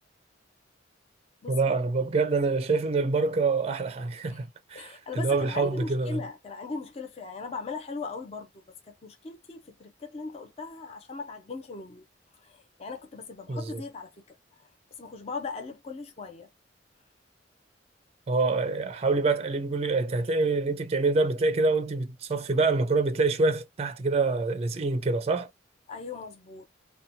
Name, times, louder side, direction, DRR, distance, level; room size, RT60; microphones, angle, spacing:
voice 1, 1.5-6.2 13.5-13.8 18.3-25.5, right 3 dB, 35° right, 0.4 m, -26 dB
voice 2, 4.7-12.0 12.4-14.7 15.0-16.5 25.9-26.7, left 4 dB, 35° left, 0.5 m, -39 dB
2.7 x 2.2 x 2.7 m
head